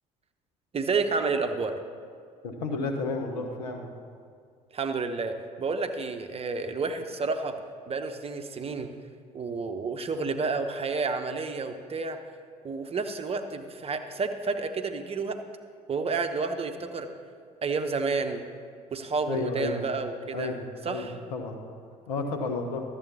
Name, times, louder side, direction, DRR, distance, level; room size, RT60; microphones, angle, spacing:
voice 1, 0.7-1.7 4.7-7.5 7.9-8.9 9.3-12.2 12.6-15.4 15.9-17.1 17.6-18.4 18.9-20.5 20.8-21.1, right 4 dB, 30° right, 7 dB, 0.9 m, -30 dB
voice 2, 2.4-3.9 19.3-19.8 20.3-21.6 22.1-22.8, left 3 dB, 75° left, 3 dB, 1.1 m, -32 dB
12.5 x 7.6 x 4.2 m, 2.1 s
figure-of-eight pair, 55°, 20 cm